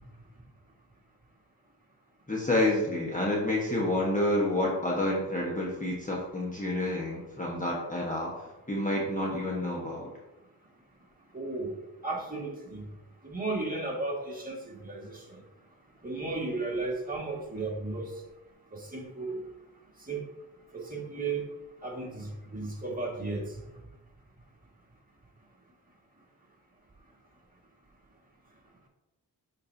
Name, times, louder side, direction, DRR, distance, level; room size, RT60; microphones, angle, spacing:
voice 1, 2.3-10.1, left 1 dB, 20° left, -3 dB, 1.4 m, -29 dB
voice 2, 11.3-11.8 12.0-12.8 13.2-15.4 16.0-18.1 18.7-19.4 20.1-20.2 20.7-21.4 21.8-23.5, right 3 dB, 20° right, -3 dB, 2.0 m, -34 dB
8.6 x 4.5 x 2.8 m, 0.99 s
cardioid pair, 65°, 40 cm